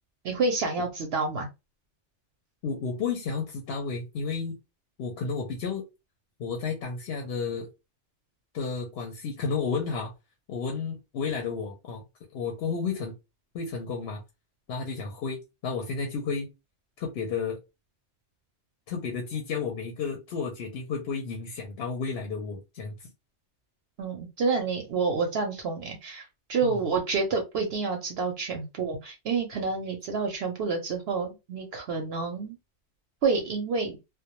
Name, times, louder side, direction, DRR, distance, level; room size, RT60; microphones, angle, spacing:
voice 1, 0.2-1.5 24.0-32.6 33.2-34.0, right 4 dB, 65° right, 0.7 m, -28 dB
voice 2, 2.6-4.6 5.0-5.8 6.4-7.7 8.5-10.1 10.5-12.0 12.3-13.1 13.5-14.2 14.7-16.5 17.0-17.6 18.9-23.1 26.6-26.8, left 5 dB, 65° left, 0.8 m, -32 dB
2.2 x 2.1 x 2.8 m
omnidirectional pair, 1.2 m